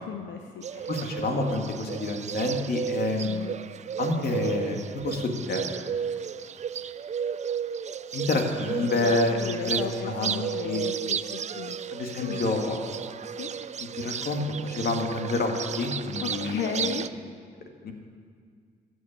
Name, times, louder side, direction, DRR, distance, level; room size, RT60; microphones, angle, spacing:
voice 1, 0.0-1.0 3.2-3.6 8.8-11.8 12.2-12.4 13.3-13.5 16.2-17.1, left 8 dB, 90° left, 5 dB, 0.7 m, -35 dB
Bird, 0.6-17.1, right 7 dB, 40° right, 0.4 m, -33 dB
voice 2, 0.9-3.4 4.0-5.7 8.1-9.8 10.1-10.9 11.9-12.8 14.0-16.9 17.8-17.9, left 2 dB, 60° left, 2 dB, 2.0 m, -28 dB
14.5 x 6.5 x 8.8 m, 2.1 s
cardioid pair, 75°, 18 cm